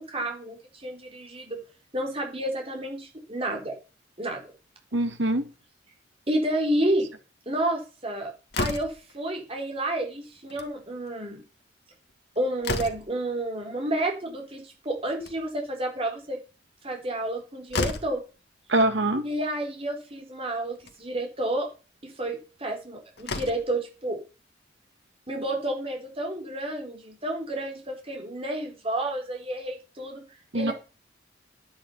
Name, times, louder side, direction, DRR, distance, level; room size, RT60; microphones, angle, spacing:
voice 1, 0.0-1.6 1.9-3.7 4.2-4.5 6.3-7.1 7.5-8.3 8.6-11.4 12.4-16.4 16.8-18.2 19.2-21.7 22.0-24.2 25.3-30.2 30.5-30.7, right 1 dB, 30° right, 4.1 m, -30 dB
voice 2, 4.9-5.4 18.7-19.2 30.5-30.7, right 1 dB, 75° right, 2.4 m, -23 dB
Slam, 8.5-9.1 10.4-10.7 11.1-11.2 11.4-11.5 12.1-13.2 15.0-15.7 17.3-17.4 17.7-18.2 19.3-19.4 19.8-19.9 20.7-21.0 22.7-22.8 23.2-23.8, left 3 dB, 60° left, 1.9 m, -32 dB
10.5 x 9.8 x 5.7 m
head